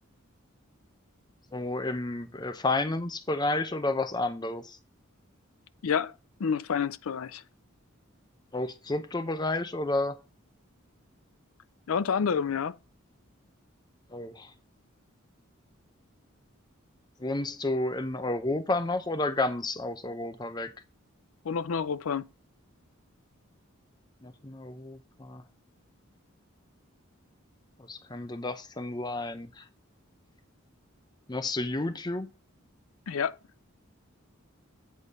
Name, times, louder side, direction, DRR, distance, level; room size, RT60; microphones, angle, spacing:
voice 1, 1.5-4.8 8.5-10.2 14.1-14.5 17.2-20.7 24.2-25.4 27.9-29.6 31.3-32.3, left 2 dB, 20° left, 0.6 m, -31 dB
voice 2, 5.8-6.1 6.4-7.4 11.9-12.8 21.4-22.2 33.1-33.4, left 6 dB, 80° left, 0.4 m, -28 dB
8.3 x 3.7 x 5.3 m
head